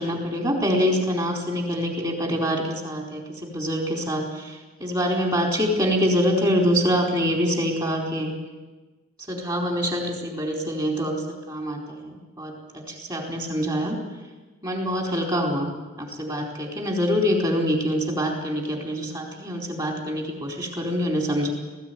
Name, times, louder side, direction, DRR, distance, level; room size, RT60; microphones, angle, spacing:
voice 1, 0.0-8.3 9.3-14.0 14.6-15.7 16.0-21.5, equal, 20° right, 0 dB, 4.2 m, -25 dB
19.5 x 16.0 x 9.4 m, 1.2 s
head